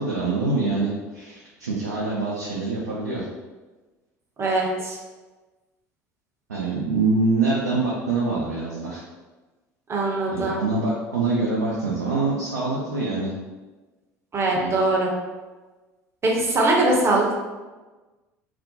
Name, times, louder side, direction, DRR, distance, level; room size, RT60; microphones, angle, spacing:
voice 1, 0.0-3.2 6.5-9.0 10.3-13.3 14.5-14.7, right 3 dB, 85° right, -5 dB, 0.4 m, -25 dB
voice 2, 4.4-5.0 9.9-10.6 14.3-15.1 16.2-17.3, right 2 dB, 30° right, -2 dB, 0.6 m, -21 dB
2.4 x 2.0 x 2.6 m, 1.2 s
figure-of-eight pair, 65°, 9 cm